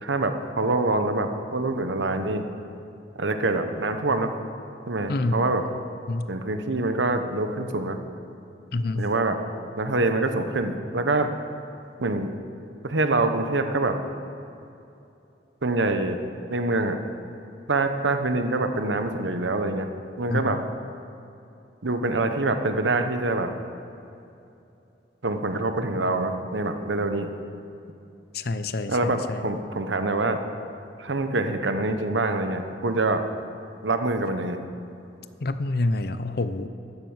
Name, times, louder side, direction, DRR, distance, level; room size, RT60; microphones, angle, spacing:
voice 1, 0.0-2.5 3.2-4.3 4.9-5.6 6.3-8.0 9.0-9.4 9.8-11.3 12.0-12.3 12.8-14.0 15.6-16.2 16.5-17.0 17.7-19.9 20.2-20.6 21.8-23.5 25.2-27.3 28.9-30.4 31.0-33.2 33.8-34.6, right 2 dB, 90° right, 7 dB, 1.1 m, -25 dB
voice 2, 5.1-5.5 6.1-6.3 8.7-9.1 20.3-20.6 28.3-29.5 35.4-36.7, left 2 dB, 60° left, 11 dB, 0.7 m, -27 dB
13.0 x 10.5 x 7.4 m, 2.8 s
head